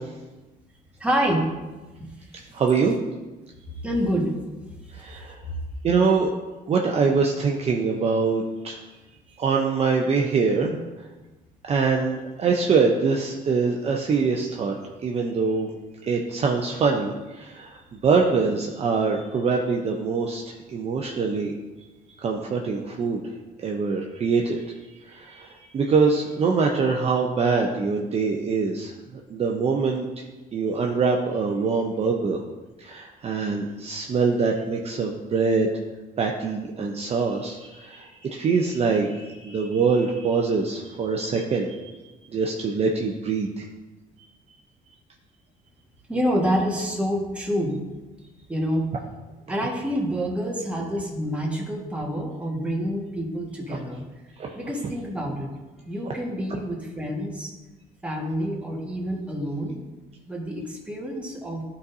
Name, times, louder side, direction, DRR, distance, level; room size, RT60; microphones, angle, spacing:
voice 1, 1.0-1.5 3.8-4.3 46.1-47.8 48.5-48.8 49.5-54.0 54.5-55.5 55.9-57.5 58.0-59.8 60.3-61.6, equal, 5° right, -2 dB, 1.6 m, -27 dB
voice 2, 2.5-3.0 4.9-5.4 5.8-6.3 6.7-8.8 9.4-10.8 11.7-14.7 15.0-15.7 16.0-20.4 20.7-21.5 22.2-23.2 23.6-24.6 25.1-25.5 25.7-28.9 29.3-30.1 30.5-32.4 32.8-35.7 36.2-41.8 42.3-43.7 54.4-54.6, right 4 dB, 35° right, 0 dB, 0.6 m, -24 dB
12.0 x 4.1 x 2.7 m, 1.2 s
cardioid pair, 110°, 17 cm